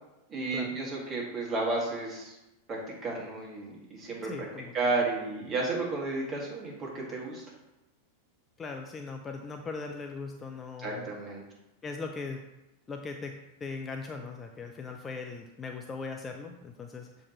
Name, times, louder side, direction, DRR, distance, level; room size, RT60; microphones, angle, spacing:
voice 1, 0.3-2.3 2.7-4.5 4.7-7.4 10.8-11.4, right 3 dB, 25° right, -4 dB, 2.1 m, -32 dB
voice 2, 4.2-4.7 8.6-11.1 11.8-12.4 12.9-13.3 13.6-17.2, left 4 dB, 20° left, 4 dB, 0.5 m, -39 dB
7.1 x 4.6 x 3.1 m, 0.95 s
figure-of-eight pair, 90°, 0 cm